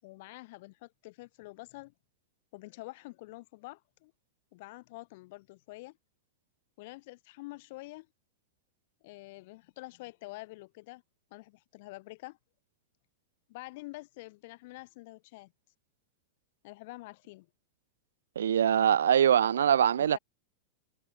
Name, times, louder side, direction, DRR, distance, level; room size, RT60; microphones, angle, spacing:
voice 1, 0.0-1.9 2.5-4.1 4.5-6.0 6.8-8.1 9.0-11.0 11.3-12.4 13.5-15.5 16.6-17.5 20.0-20.2, left 22 dB, 60° left, 7.6 m, -47 dB
voice 2, 18.4-20.2, right 9 dB, 80° right, 0.8 m, -23 dB
hypercardioid pair, 100°, 0 cm